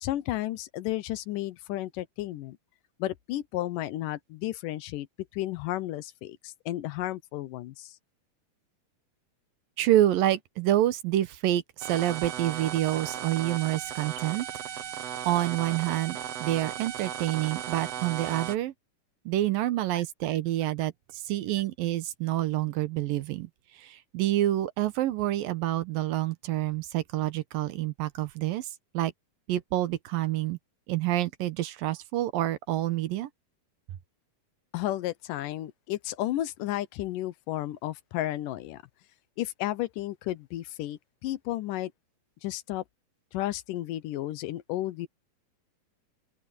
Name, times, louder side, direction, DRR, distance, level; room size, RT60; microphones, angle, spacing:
voice 1, 0.0-2.6 3.0-5.1 5.3-8.0 34.7-38.8 39.4-41.9 42.4-42.8 43.3-45.1, left 15 dB, 75° left, 2.3 m, -33 dB
voice 2, 9.8-14.5 15.2-18.7 19.3-23.5 23.8-28.7 28.9-29.1 29.5-30.6 30.9-33.3, right 14 dB, 85° right, 2.9 m, -27 dB
sound 1, 11.8-18.6, right 10 dB, 60° right, 1.9 m, -36 dB
open air
omnidirectional pair, 3.9 m